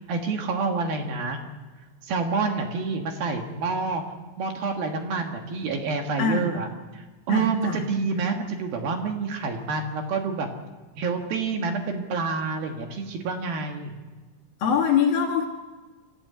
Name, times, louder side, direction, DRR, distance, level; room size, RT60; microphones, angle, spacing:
voice 1, 0.1-1.4 2.0-4.0 4.4-6.7 6.9-10.5 11.0-13.9, right 4 dB, 60° right, 3 dB, 2.7 m, -28 dB
voice 2, 6.2-6.5 7.3-7.8 14.6-15.5, left 6 dB, 55° left, -1 dB, 2.9 m, -23 dB
27.5 x 13.5 x 8.3 m, 1.3 s
omnidirectional pair, 5.9 m